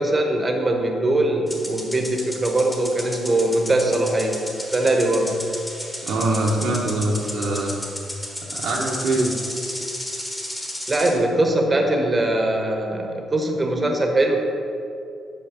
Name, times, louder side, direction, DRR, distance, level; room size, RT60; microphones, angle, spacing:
voice 1, 0.0-4.4 4.7-5.4 10.9-14.4, right 1 dB, 25° right, 3 dB, 1.0 m, -21 dB
sound 1, 1.5-11.2, left 1 dB, 15° left, 1.2 m, -33 dB
voice 2, 6.0-7.7 8.5-9.3, right 2 dB, 80° right, -3 dB, 1.0 m, -23 dB
5.7 x 5.2 x 5.1 m, 2.5 s
cardioid pair, 90°, 0 cm